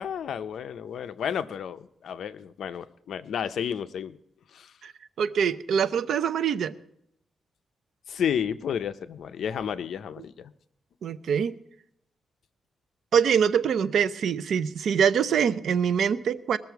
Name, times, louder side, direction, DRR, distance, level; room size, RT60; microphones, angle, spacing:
voice 1, 0.0-4.2 4.5-4.7 8.1-10.5, left 8 dB, 75° left, 12 dB, 0.6 m, -31 dB
voice 2, 5.2-6.7 11.0-11.5 13.1-16.6, right 7 dB, 75° right, 14 dB, 0.5 m, -24 dB
20.5 x 7.0 x 4.6 m, 0.74 s
cardioid pair, 115°, 0 cm